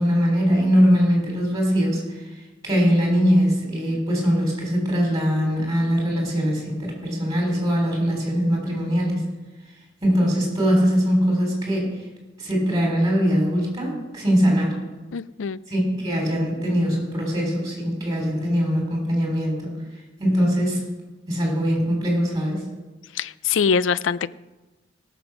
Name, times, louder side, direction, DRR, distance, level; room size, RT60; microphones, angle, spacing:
voice 1, 0.0-2.0 2.6-9.2 10.0-11.9 12.4-14.8 15.7-19.7 20.2-20.8 21.3-22.6, equal, 20° right, -1 dB, 3.8 m, -21 dB
voice 2, 15.1-15.6 23.1-24.3, left 6 dB, 90° left, 18 dB, 0.4 m, -23 dB
18.0 x 7.0 x 6.0 m, 1.1 s
head